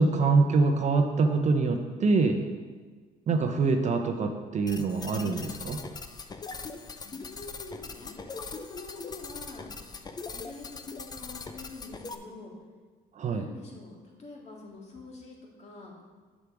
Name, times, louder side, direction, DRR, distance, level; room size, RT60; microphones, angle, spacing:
voice 1, 0.0-2.4 3.3-5.8 13.1-13.5, right 3 dB, 45° right, 5 dB, 0.8 m, -25 dB
sound 1, 4.7-12.2, left 4 dB, 25° left, 0.6 m, -41 dB
voice 2, 7.0-9.7 10.3-12.5 13.3-15.9, left 3 dB, 40° left, -2 dB, 2.1 m, -45 dB
7.5 x 6.8 x 4.8 m, 1.4 s
cardioid pair, 110°, 17 cm